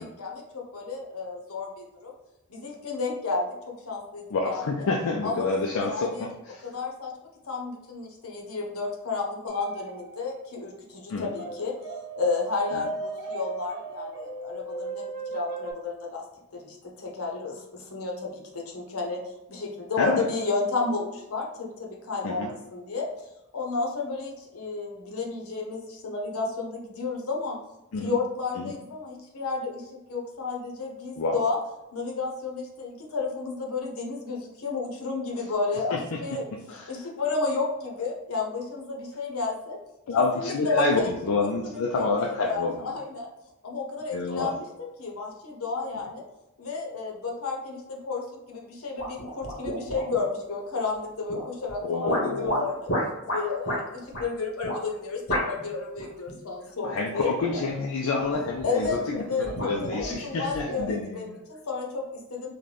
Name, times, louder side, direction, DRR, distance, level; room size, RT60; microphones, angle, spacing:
voice 1, 0.0-2.1 2.5-4.7 5.2-6.3 6.6-7.1 7.5-11.7 12.2-16.2 16.5-19.2 19.5-23.3 23.5-27.6 28.0-31.6 31.9-36.4 36.9-39.8 40.3-41.1 41.4-43.3 43.6-46.2 46.6-52.9 53.2-57.3 58.6-62.5, left 4 dB, 90° left, 0 dB, 0.8 m, -32 dB
voice 2, 4.3-6.7 11.1-11.3 12.7-12.8 20.0-20.3 22.2-22.5 27.9-28.1 28.6-28.7 31.2-31.4 35.9-36.2 36.5-37.0 40.1-42.8 44.1-44.5 51.8-52.7 56.8-61.4, left 3 dB, 75° left, 0 dB, 0.4 m, -28 dB
sound 1, 9.5-10.4 11.4-15.7, right 3 dB, 55° right, 0.7 m, -36 dB
sound 2, 49.0-50.3 51.3-51.7 52.1-53.8 54.1-54.3 54.6-54.8 55.3-55.7 56.0-56.3 57.2-57.8 58.2-59.1 59.4-61.0, equal, 55° left, 1.5 m, -32 dB
3.8 x 2.2 x 3.2 m, 0.95 s
head